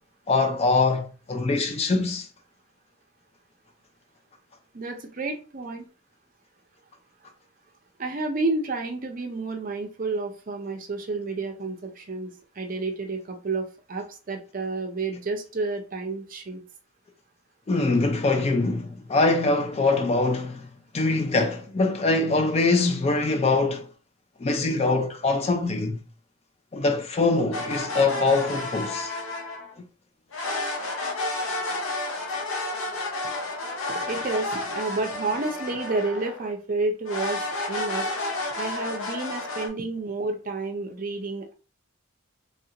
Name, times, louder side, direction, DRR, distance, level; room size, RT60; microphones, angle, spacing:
voice 1, 0.3-2.3 17.7-20.7 20.9-23.9 24.4-26.0 26.7-29.1, left 3 dB, 30° left, 0.3 m, -23 dB
voice 2, 4.7-5.9 8.0-16.6 33.9-38.1 38.6-41.5, right 3 dB, 40° right, 0.5 m, -30 dB
sound 1, 27.5-29.7 30.3-36.5 37.1-39.7, left 2 dB, 80° left, 0.8 m, -31 dB
3.2 x 2.4 x 2.8 m
head